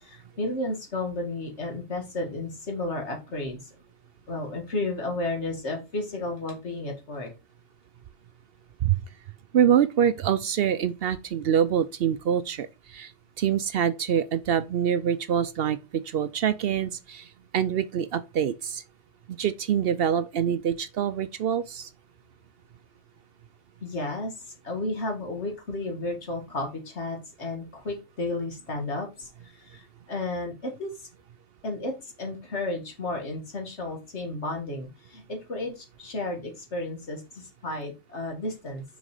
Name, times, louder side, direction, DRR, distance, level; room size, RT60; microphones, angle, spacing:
voice 1, 0.0-3.6 4.3-7.3 23.8-30.9 31.6-38.8, left 2 dB, 70° left, 2.2 m, -33 dB
voice 2, 9.5-13.1 13.4-17.3 17.5-18.8 19.3-21.9, right 9 dB, 65° right, 0.7 m, -25 dB
6.2 x 5.1 x 4.8 m
omnidirectional pair, 1.2 m